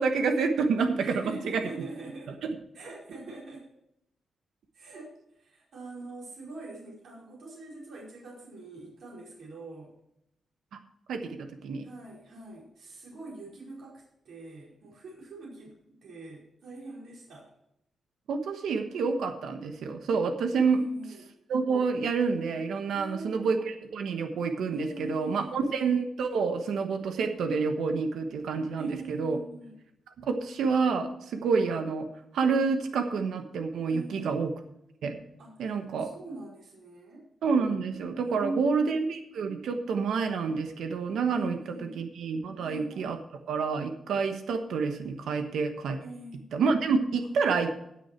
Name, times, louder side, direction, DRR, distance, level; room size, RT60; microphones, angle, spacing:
voice 1, 0.0-1.6 2.4-2.5 11.1-11.9 18.3-20.8 21.5-29.4 30.2-32.1 32.3-34.5 35.0-35.2 35.6-36.1 37.4-43.2 43.5-46.0 46.5-47.7, right 5 dB, 90° right, 6 dB, 1.2 m, -28 dB
voice 2, 1.0-2.3 2.7-3.7 4.7-9.9 11.8-17.5 20.7-21.3 22.9-23.5 24.7-25.7 28.8-29.8 33.9-34.4 35.4-37.3 38.1-38.8 41.3-42.0 42.6-43.2 46.0-46.5, right 2 dB, 65° right, -5 dB, 4.9 m, -43 dB
17.0 x 6.3 x 4.5 m, 0.78 s
wide cardioid pair, 175°, 0 cm